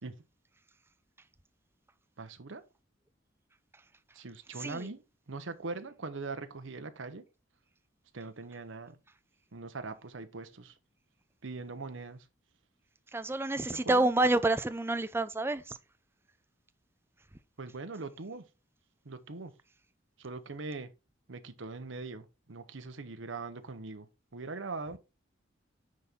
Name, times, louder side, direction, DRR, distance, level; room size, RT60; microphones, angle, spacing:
voice 1, 2.2-2.6 4.1-5.0 5.3-7.2 8.1-9.0 9.5-10.7 11.4-12.2 13.8-14.1 17.6-18.4 19.0-19.5 20.2-20.9 21.3-24.1 24.3-25.0, right 3 dB, 80° right, 0.9 m, -41 dB
voice 2, 4.6-4.9 13.1-15.8, right 2 dB, 10° right, 0.5 m, -28 dB
9.4 x 4.3 x 3.6 m
head